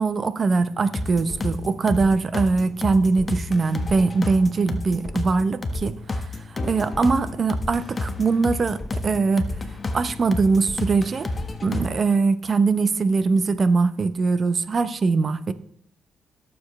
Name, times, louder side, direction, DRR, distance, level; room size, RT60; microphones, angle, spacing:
voice 1, 0.0-9.5 9.9-11.3 11.6-15.5, right 4 dB, 40° right, 12 dB, 0.9 m, -22 dB
sound 1, 0.8-11.9, left 2 dB, 30° left, 1.3 m, -30 dB
21.0 x 7.2 x 3.3 m, 0.70 s
cardioid pair, 90°, 0 cm